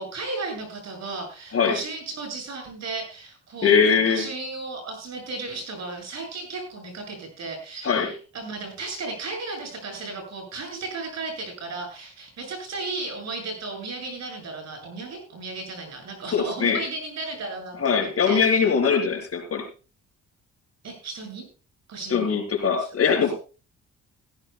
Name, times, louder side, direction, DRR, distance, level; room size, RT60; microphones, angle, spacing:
voice 1, 0.0-18.6 20.8-21.5 21.9-22.4 23.3-23.4, right 3 dB, 60° right, 3 dB, 8.0 m, -35 dB
voice 2, 3.6-4.3 7.8-8.1 16.3-16.8 17.8-19.7 22.1-23.3, left 6 dB, 50° left, 3 dB, 4.3 m, -21 dB
18.5 x 15.5 x 2.3 m, 0.34 s
cardioid pair, 90°, 30 cm